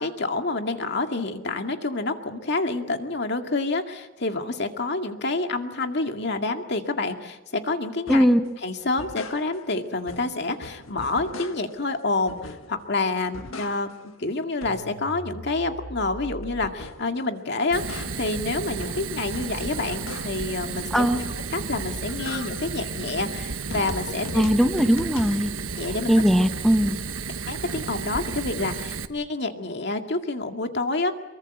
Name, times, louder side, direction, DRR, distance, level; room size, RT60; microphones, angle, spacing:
voice 1, 0.0-8.3 8.6-21.1 21.5-24.5 25.8-26.1 27.5-31.1, left 3 dB, 55° left, 5 dB, 2.1 m, -28 dB
sound 1, 8.1-8.4 8.8-9.8 10.1-11.9 12.3-12.9 13.2-14.1 14.4-17.2 17.5-20.6 21.0-21.6 21.9-25.5, left 2 dB, 85° left, 1.6 m, -40 dB
voice 2, 8.1-8.4 20.9-21.2 24.3-25.5 26.1-27.0, equal, ahead, 7 dB, 1.2 m, -19 dB
Fire, 17.7-29.1, right 5 dB, 85° right, 1.2 m, -33 dB
24.5 x 23.0 x 7.9 m, 1.1 s
head